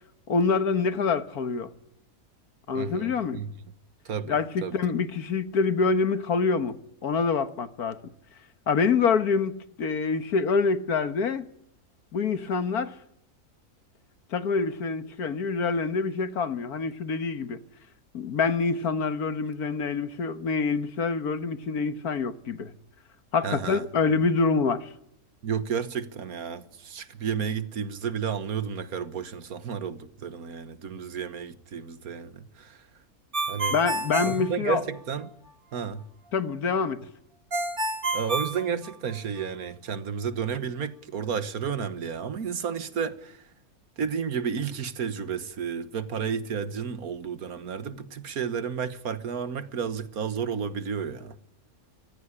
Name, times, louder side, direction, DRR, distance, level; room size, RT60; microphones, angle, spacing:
voice 1, 0.3-1.7 2.7-3.4 4.3-6.7 7.0-8.0 8.7-11.5 12.1-12.9 14.3-17.6 18.1-22.7 23.3-24.9 33.7-34.8 36.3-37.0, left 5 dB, 75° left, 1.9 m, -26 dB
voice 2, 2.7-3.5 4.0-4.7 23.4-23.9 25.4-32.8 33.5-33.7 34.2-35.3 35.7-36.0 38.1-43.4 44.0-51.3, right 7 dB, 70° right, 1.7 m, -32 dB
Ringtone, 33.3-35.3 37.5-39.4, right 2 dB, 35° right, 2.6 m, -29 dB
25.0 x 16.0 x 10.0 m
omnidirectional pair, 1.6 m